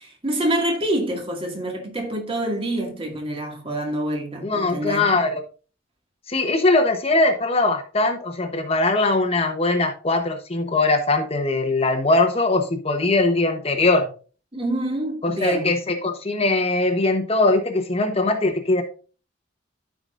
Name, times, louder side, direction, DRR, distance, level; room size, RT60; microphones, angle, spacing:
voice 1, 0.0-5.1 14.5-15.7, right 1 dB, 30° right, 2.1 m, -26 dB
voice 2, 4.4-5.4 6.3-14.1 15.2-18.8, left 2 dB, 30° left, 1.0 m, -21 dB
13.5 x 4.9 x 2.5 m
head